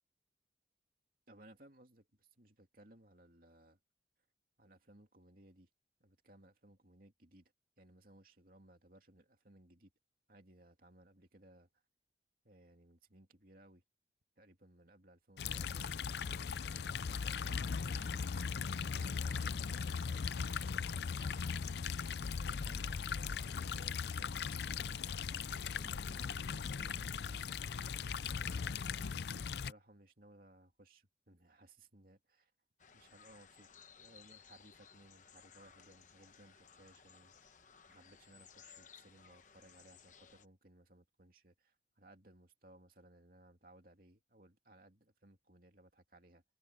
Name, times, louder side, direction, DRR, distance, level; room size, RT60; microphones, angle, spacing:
voice 1, 1.3-3.8 4.6-5.7 6.0-9.9 10.3-11.7 12.4-13.8 14.4-16.1 16.7-18.2 18.6-21.5 22.3-25.3 25.7-28.0 28.8-32.5 32.9-33.7 34.0-37.6 37.9-46.4, right 1 dB, 50° right, 2.7 m, -62 dB
sound 1, 15.4-29.7, left 6 dB, 65° left, 0.5 m, -38 dB
sound 2, 32.8-40.5, left 7 dB, 45° left, 1.0 m, -60 dB
head